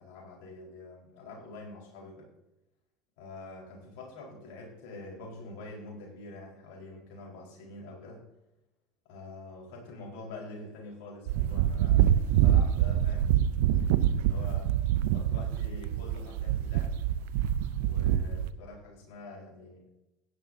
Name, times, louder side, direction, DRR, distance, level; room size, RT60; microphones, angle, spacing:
voice 1, 0.0-2.3 3.2-8.2 9.0-13.3 13.6-14.7 15.1-17.0 17.8-19.9, left 2 dB, 70° left, -1 dB, 4.6 m, -46 dB
sound 1, 11.3-18.5, right 11 dB, 75° right, 0.5 m, -26 dB
16.0 x 11.0 x 2.8 m, 0.93 s
hypercardioid pair, 75°, 0 cm